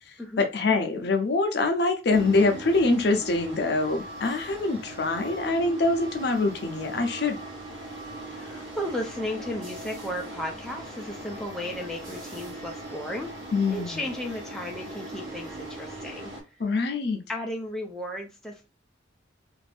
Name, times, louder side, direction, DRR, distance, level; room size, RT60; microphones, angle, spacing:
voice 1, 0.1-7.4 13.5-14.1 16.6-17.2, left 3 dB, 55° left, 6 dB, 0.5 m, -24 dB
sound 1, 2.1-16.4, right 2 dB, 80° right, 1.0 m, -40 dB
voice 2, 8.2-13.3 13.7-16.3 17.3-18.7, left 1 dB, 5° left, 0 dB, 0.5 m, -34 dB
2.6 x 2.5 x 3.3 m, 0.29 s
head